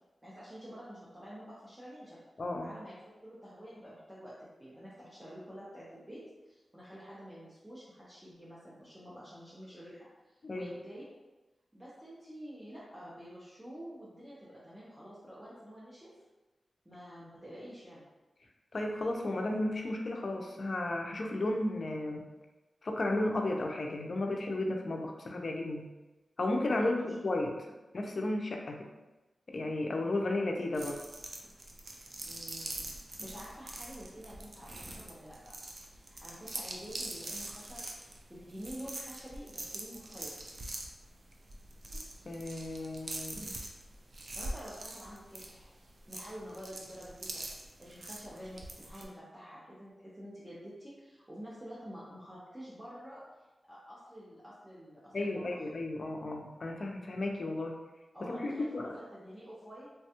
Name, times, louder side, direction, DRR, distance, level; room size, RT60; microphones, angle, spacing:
voice 1, 0.2-2.2 2.6-2.9 3.2-11.0 11.7-16.1 16.8-18.1 26.8-27.0 32.3-32.8 33.2-35.6 36.1-40.5 44.4-47.4 47.8-53.2 53.7-55.4 58.1-59.9, equal, 10° right, -9 dB, 0.6 m, -48 dB
voice 2, 2.4-2.7 10.4-10.7 18.7-22.3 22.8-25.9 26.4-27.6 27.9-28.9 29.5-31.0 42.3-43.5 55.1-57.8 58.2-59.0, left 2 dB, 50° left, 2 dB, 0.4 m, -33 dB
sound 1, 30.7-49.1, right 2 dB, 50° right, 0.4 m, -44 dB
3.3 x 2.2 x 2.8 m, 1.1 s
wide cardioid pair, 110°, 0 cm